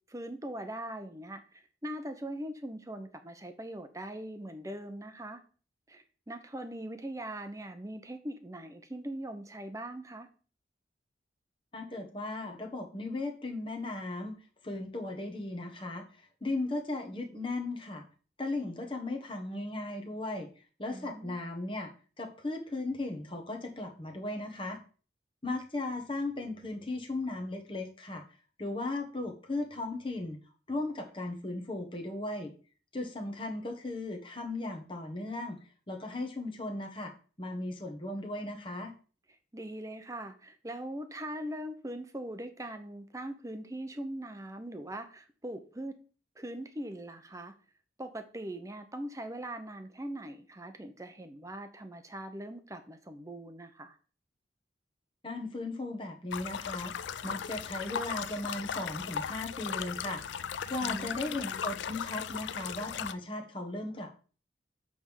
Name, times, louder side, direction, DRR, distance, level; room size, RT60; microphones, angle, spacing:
voice 1, 0.1-5.4 5.9-10.3 20.9-21.4 39.5-46.0 46.4-47.5 48.0-54.0 60.8-61.5, right 1 dB, 15° right, 8 dB, 0.8 m, -41 dB
voice 2, 11.7-14.3 14.6-18.0 18.4-20.5 20.8-21.9 22.2-24.8 25.4-28.2 28.6-30.4 30.7-32.5 32.9-35.6 35.9-37.1 37.4-38.9 55.2-60.2 60.7-64.1, left 2 dB, 25° left, 3 dB, 1.4 m, -36 dB
sound 1, 56.3-63.1, left 8 dB, 75° left, 0.4 m, -37 dB
7.8 x 3.6 x 6.3 m, 0.38 s
head